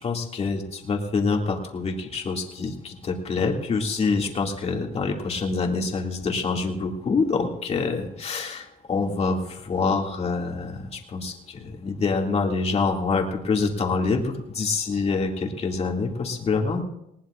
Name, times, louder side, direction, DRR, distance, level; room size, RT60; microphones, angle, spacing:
voice 1, 0.0-16.8, left 4 dB, 40° left, 1 dB, 2.4 m, -26 dB
20.0 x 19.0 x 2.5 m, 0.81 s
cardioid pair, 110°, 17 cm